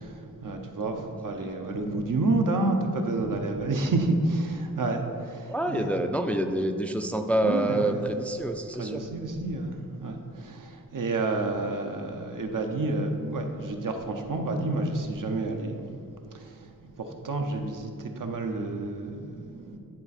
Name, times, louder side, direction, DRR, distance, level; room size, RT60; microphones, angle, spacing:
voice 1, 0.0-5.9 7.4-8.1 8.8-15.9 16.3-19.8, right 2 dB, 70° right, 3 dB, 0.8 m, -30 dB
voice 2, 5.5-9.0, right 1 dB, 5° left, 6 dB, 0.4 m, -27 dB
9.9 x 4.3 x 4.2 m, 2.4 s
wide cardioid pair, 85°, 33 cm